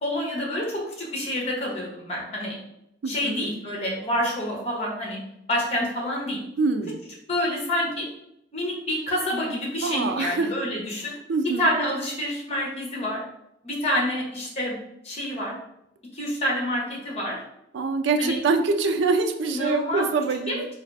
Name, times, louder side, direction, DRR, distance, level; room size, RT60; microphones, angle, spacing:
voice 1, 0.0-2.6 3.1-5.2 5.5-6.4 7.3-8.1 8.5-11.1 11.6-13.2 13.6-14.8 15.0-15.5 16.1-17.4 18.2-18.4 19.5-20.1 20.5-20.6, left 1 dB, 35° left, -2 dB, 1.1 m, -27 dB
voice 2, 3.0-3.5 6.6-7.0 9.8-10.5 11.3-11.7 17.7-20.7, right 4 dB, 80° right, 6 dB, 0.4 m, -24 dB
4.0 x 2.6 x 3.3 m, 0.81 s
head